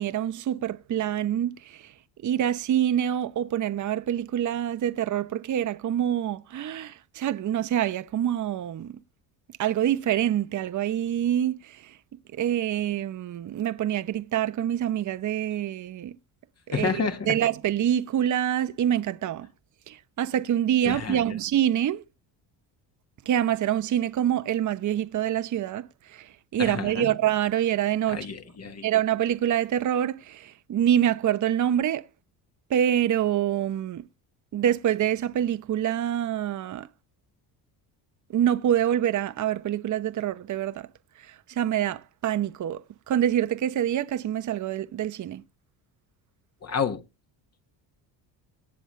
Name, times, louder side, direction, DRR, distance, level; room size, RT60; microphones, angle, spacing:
voice 1, 0.0-1.9 2.2-9.0 9.6-12.0 12.3-16.2 16.7-17.0 17.3-19.5 19.9-22.0 23.3-28.3 28.8-32.0 32.7-34.1 34.5-36.9 38.3-40.9 41.2-45.4, right 10 dB, 40° right, 1.0 m, -26 dB
voice 2, 16.7-17.4 20.8-21.2 26.6-27.1 28.1-28.8 46.6-47.0, left 5 dB, 35° left, 1.7 m, -29 dB
18.0 x 7.3 x 3.3 m
cardioid pair, 105°, 44 cm